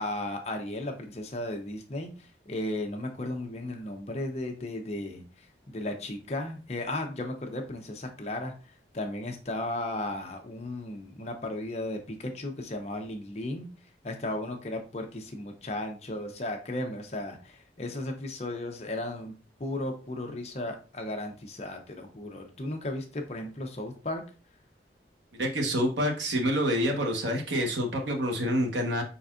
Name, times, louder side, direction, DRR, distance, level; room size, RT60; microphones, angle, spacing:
voice 1, 0.0-2.1 2.5-5.2 5.7-8.5 8.9-13.7 14.0-19.3 19.6-24.2, left 1 dB, 35° left, 0.7 m, -35 dB
voice 2, 25.4-29.0, equal, 90° right, 1.1 m, -27 dB
5.1 x 4.0 x 2.4 m
head